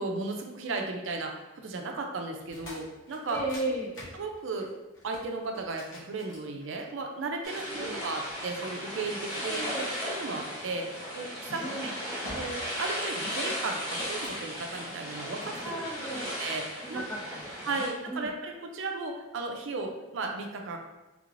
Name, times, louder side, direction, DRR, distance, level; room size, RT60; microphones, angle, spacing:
voice 1, 0.0-3.4 4.1-4.7 5.0-9.6 10.0-10.8 11.1-11.9 12.3-15.8 16.4-17.0 17.7-20.8, right 3 dB, 75° right, 3 dB, 0.4 m, -35 dB
sound 1, 2.4-7.1 7.8-9.1 10.9-11.1 11.6-11.9 12.2-12.8 13.1-14.7 15.2-15.8, left 1 dB, 75° left, 1.1 m, -48 dB
voice 2, 3.3-3.9 7.7-8.0 9.4-9.9 11.6-11.9 15.6-16.3 16.8-18.3, right 1 dB, 10° left, -5 dB, 0.7 m, -35 dB
sound 2, 7.4-17.9, equal, 40° left, 1.5 m, -36 dB
3.3 x 3.1 x 2.5 m, 1.1 s
head